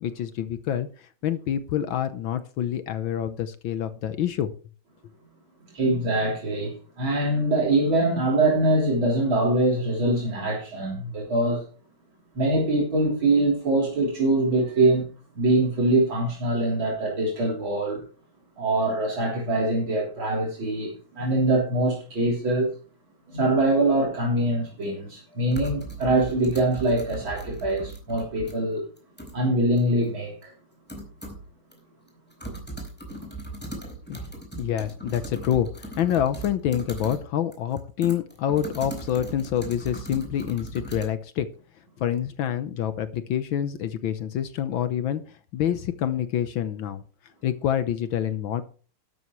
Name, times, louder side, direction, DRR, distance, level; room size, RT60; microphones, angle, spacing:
voice 1, 0.0-4.5 34.1-34.2 34.6-41.5 42.0-47.0 47.4-48.6, left 10 dB, 75° left, 1.6 m, -27 dB
voice 2, 5.7-11.7 12.4-15.0 15.3-18.0 18.6-22.7 23.3-28.8 29.3-30.5, right 2 dB, 70° right, 4.2 m, -23 dB
sound 1, 24.7-24.8 25.5-28.5 29.0-29.4 29.8-29.9 30.4-30.5 30.9-31.5 31.7-31.8 32.1-37.2 37.5-41.0, right 2 dB, 5° left, 4.3 m, -38 dB
12.5 x 12.0 x 3.1 m
omnidirectional pair, 2.3 m